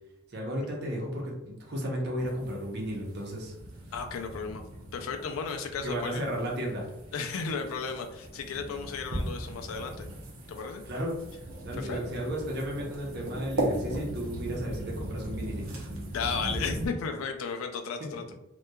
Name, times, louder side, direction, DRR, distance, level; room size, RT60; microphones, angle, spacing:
voice 1, 0.3-3.6 5.8-6.9 10.9-11.1 11.6-15.8 18.0-18.2, equal, 50° right, -1 dB, 0.7 m, -34 dB
sound 1, 2.2-16.9, right 1 dB, 85° right, 0.7 m, -38 dB
voice 2, 3.9-4.6 4.9-6.2 7.1-10.0 10.5-10.8 11.8-12.0 16.1-18.4, left 5 dB, 75° left, 5 dB, 0.4 m, -34 dB
2.8 x 2.2 x 2.2 m, 0.92 s
head